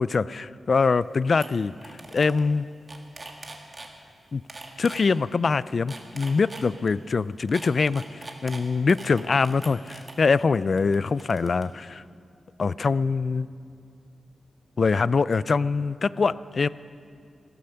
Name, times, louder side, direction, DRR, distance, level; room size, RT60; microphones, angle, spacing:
voice 1, 0.0-1.7 2.1-2.7 4.3-4.4 4.8-12.0 12.6-13.5 14.8-16.7, left 4 dB, 45° left, 18 dB, 0.3 m, -23 dB
sound 1, 1.0-1.1 1.4-1.5 1.8-2.4 2.7-3.9 4.5-5.0 5.7-6.9 7.5-10.1 10.8-11.6, right 2 dB, 25° right, 1.5 m, -42 dB
16.0 x 13.0 x 5.7 m, 2.3 s
wide cardioid pair, 130°, 0 cm